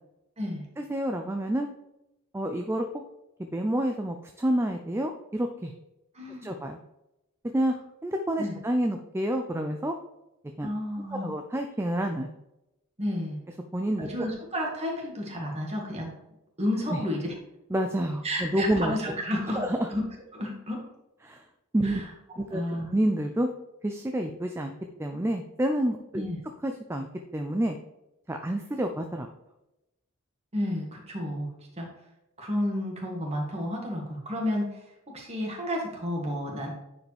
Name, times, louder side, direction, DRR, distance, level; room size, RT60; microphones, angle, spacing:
voice 1, 0.8-1.7 2.3-3.0 3.4-5.7 6.4-6.8 7.5-7.7 8.0-9.9 10.6-10.7 11.2-12.3 13.7-14.1 16.9-17.0 17.7-19.2 19.5-19.9 21.2-21.4 21.7-22.0 22.4-22.6 22.9-23.5 23.8-24.7 25.0-26.3 26.6-27.1 27.3-27.8 28.3-29.3, right 1 dB, 10° right, 4 dB, 0.4 m, -28 dB
voice 2, 6.1-6.5 8.4-8.5 10.6-11.3 13.0-13.4 14.0-16.1 16.6-17.3 18.2-19.6 19.9-20.0 20.3-20.8 21.8-22.1 22.3-22.9 26.1-26.4 30.5-31.5 31.8-31.9 32.4-34.8 35.1-36.7, left 1 dB, 30° right, -1 dB, 1.9 m, -31 dB
9.5 x 4.9 x 3.4 m, 0.91 s
head